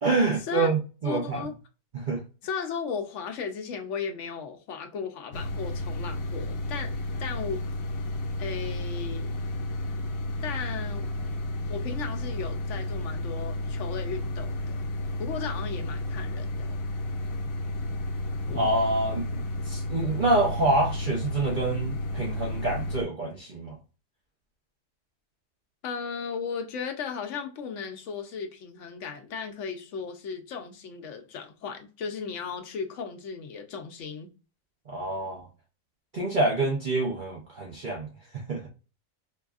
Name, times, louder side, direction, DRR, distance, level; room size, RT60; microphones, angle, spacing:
voice 1, 0.0-1.4 1.9-2.2 18.5-19.3 19.6-23.8 34.9-35.5 36.1-38.1 38.5-38.6, right 2 dB, 45° right, 0.8 m, -26 dB
voice 2, 1.0-1.5 2.4-7.7 8.4-9.3 10.4-11.2 11.7-14.8 15.2-16.8 25.8-34.3, left 6 dB, 65° left, 1.0 m, -36 dB
sound 1, 5.3-23.0, left 1 dB, 90° left, 1.1 m, -32 dB
4.7 x 2.5 x 2.4 m
omnidirectional pair, 1.4 m